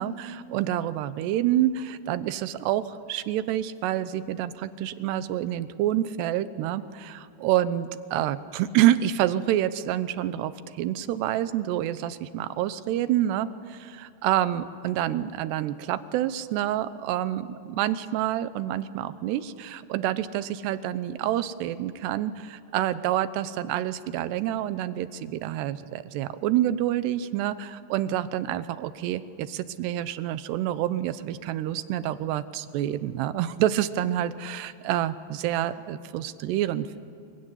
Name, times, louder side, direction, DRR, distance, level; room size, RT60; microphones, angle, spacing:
voice 1, 0.0-37.0, right 12 dB, 90° right, 13 dB, 3.0 m, -27 dB
26.5 x 23.0 x 9.8 m, 2.3 s
omnidirectional pair, 4.7 m